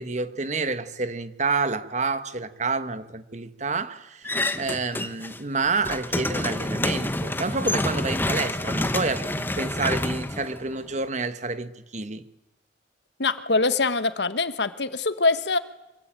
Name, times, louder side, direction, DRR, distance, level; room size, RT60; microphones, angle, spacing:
voice 1, 0.0-12.2, right 3 dB, 40° right, 1.3 m, -29 dB
sound 1, 4.2-5.4 5.7-11.1, left 1 dB, 10° left, 1.1 m, -28 dB
voice 2, 13.2-15.6, left 3 dB, 70° left, 1.3 m, -23 dB
25.0 x 24.0 x 8.9 m
head